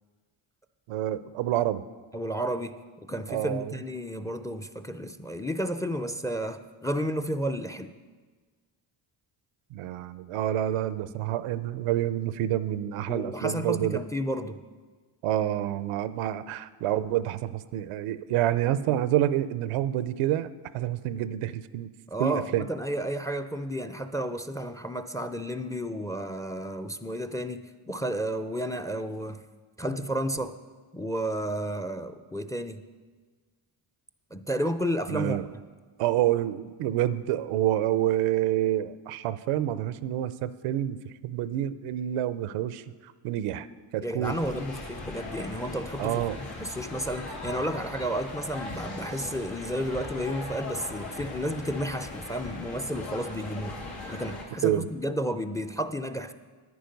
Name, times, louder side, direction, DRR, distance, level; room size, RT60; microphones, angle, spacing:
voice 1, 0.9-1.8 3.3-3.8 9.7-14.0 15.2-21.9 22.2-22.7 35.1-35.5 36.0-41.0 41.2-43.7 43.9-44.4 46.0-46.4 54.6-54.9, right 12 dB, 85° right, 15 dB, 0.6 m, -28 dB
voice 2, 2.1-2.8 3.0-7.9 13.1-14.6 22.1-29.4 29.8-30.6 30.9-32.9 34.3-35.4 44.0-53.8 54.1-56.3, equal, 5° left, 10 dB, 0.4 m, -32 dB
sound 1, 44.2-54.4, left 2 dB, 90° left, 2.4 m, -39 dB
10.0 x 9.5 x 5.2 m, 1.4 s
cardioid pair, 70°, 50 cm